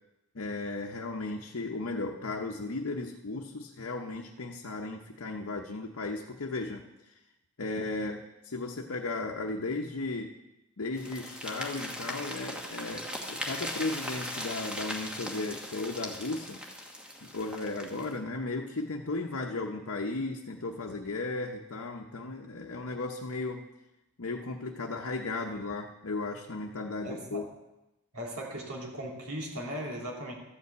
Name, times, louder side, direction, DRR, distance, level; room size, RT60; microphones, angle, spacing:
voice 1, 0.3-6.8 7.6-10.3 10.8-16.6 17.2-23.6 24.2-27.5, left 3 dB, 70° left, 1 dB, 0.8 m, -35 dB
sound 1, 11.0-18.2, equal, 5° right, 1.2 m, -39 dB
voice 2, 27.0-27.4 28.1-30.3, equal, 90° right, -2 dB, 2.8 m, -38 dB
13.0 x 5.5 x 7.9 m, 0.96 s
head